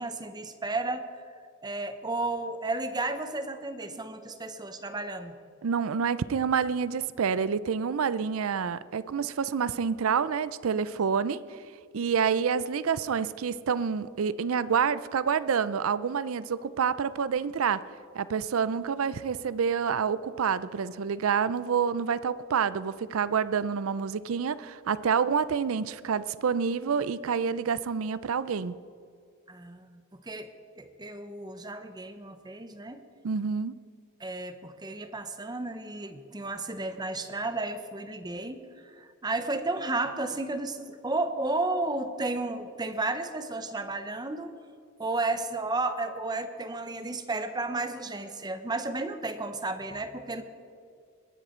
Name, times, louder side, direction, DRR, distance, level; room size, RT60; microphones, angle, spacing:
voice 1, 0.0-1.3 1.6-5.4 29.5-33.0 34.2-44.6 45.0-50.4, right 2 dB, 20° right, 9 dB, 0.7 m, -33 dB
voice 2, 5.6-11.6 11.9-17.8 18.1-28.8 33.2-33.8, right 6 dB, 75° right, 17 dB, 0.5 m, -28 dB
21.5 x 9.9 x 4.4 m, 2.3 s
head